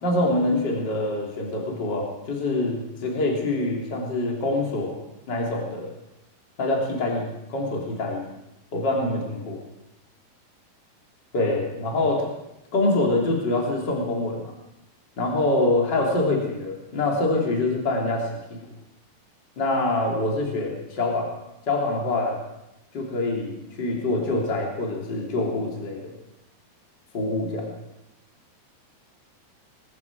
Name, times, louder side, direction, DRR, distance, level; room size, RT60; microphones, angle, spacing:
voice 1, 0.0-4.9 5.3-5.9 6.6-8.3 8.7-9.6 11.3-12.3 12.7-14.5 15.2-18.6 19.6-21.3 21.7-22.4 22.9-26.1 27.1-27.7, left 2 dB, 30° left, -1 dB, 3.4 m, -25 dB
20.0 x 14.5 x 4.8 m, 0.92 s
omnidirectional pair, 4.3 m